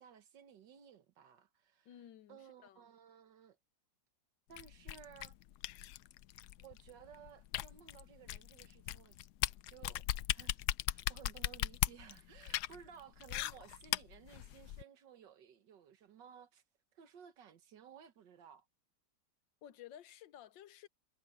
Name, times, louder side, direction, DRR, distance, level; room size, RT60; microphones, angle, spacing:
voice 1, 0.0-1.9 2.3-3.6 4.5-5.4 6.6-9.3 9.7-10.6 10.9-16.6 16.9-18.7, right 8 dB, 75° right, 1.9 m, -57 dB
voice 2, 1.8-2.9 19.6-20.9, left 11 dB, 85° left, 1.5 m, -55 dB
sound 1, 4.6-14.8, left 14 dB, 70° left, 1.1 m, -38 dB
omnidirectional pair, 2.0 m